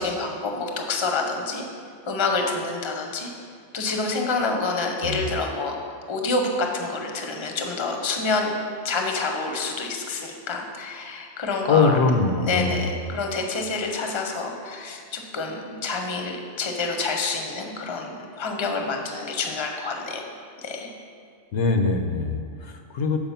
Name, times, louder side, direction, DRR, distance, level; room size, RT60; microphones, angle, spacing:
voice 1, 0.0-1.6 2.1-3.3 3.7-5.8 6.1-8.5 8.8-12.0 12.4-20.3 20.6-20.9, left 3 dB, 30° left, 3 dB, 0.7 m, -27 dB
voice 2, 11.7-12.9 21.5-23.3, left 4 dB, 85° left, 5 dB, 1.0 m, -23 dB
7.2 x 4.7 x 5.6 m, 2.2 s
omnidirectional pair, 1.1 m